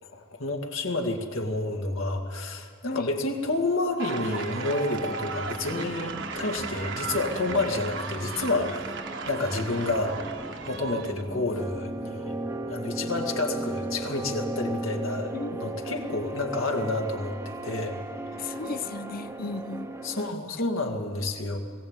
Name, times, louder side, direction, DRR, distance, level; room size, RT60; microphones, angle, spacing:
voice 1, 0.0-9.0 9.3-10.2 10.7-12.4 12.7-17.3 17.6-18.0 18.4-18.6 20.0-21.6, left 2 dB, 70° left, 2 dB, 2.1 m, -29 dB
sound 1, 4.0-11.2, right 5 dB, 60° right, 1.3 m, -36 dB
sound 2, 4.9-20.3, right 1 dB, 15° right, 0.8 m, -37 dB
voice 2, 15.3-15.7 18.4-19.9, left 4 dB, 45° left, 15 dB, 0.5 m, -35 dB
20.5 x 16.0 x 8.9 m, 2.1 s
head